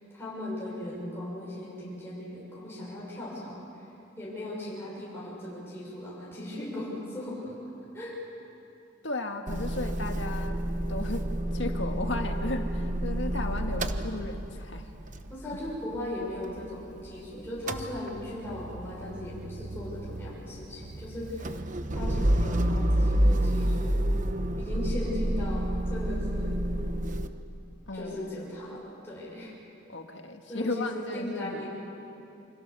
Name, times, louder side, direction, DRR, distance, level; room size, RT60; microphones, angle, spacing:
voice 1, 0.1-3.8 4.2-7.6 7.9-8.1 15.3-21.6 21.9-24.1 24.6-26.6 27.9-29.5 30.5-31.7, left 1 dB, 15° left, -7 dB, 6.4 m, -38 dB
voice 2, 9.0-10.6 10.9-14.9 27.9-28.4 29.9-31.7, left 2 dB, 70° left, 4 dB, 1.9 m, -35 dB
Motor vehicle (road) / Engine starting / Idling, 9.5-17.2 17.4-27.3, right 1 dB, 40° right, 1.0 m, -29 dB
28.0 x 26.0 x 7.0 m, 2.7 s
head